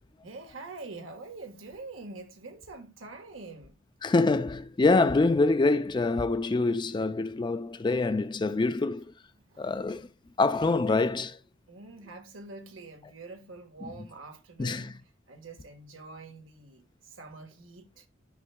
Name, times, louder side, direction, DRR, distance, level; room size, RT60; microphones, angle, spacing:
voice 1, 0.2-3.8 9.4-9.7 11.7-18.1, right 3 dB, 90° right, 1.5 m, -45 dB
voice 2, 4.0-9.0 9.6-10.1 10.4-11.4 14.6-14.9, left 3 dB, 25° left, 0.4 m, -25 dB
12.5 x 5.5 x 2.2 m
head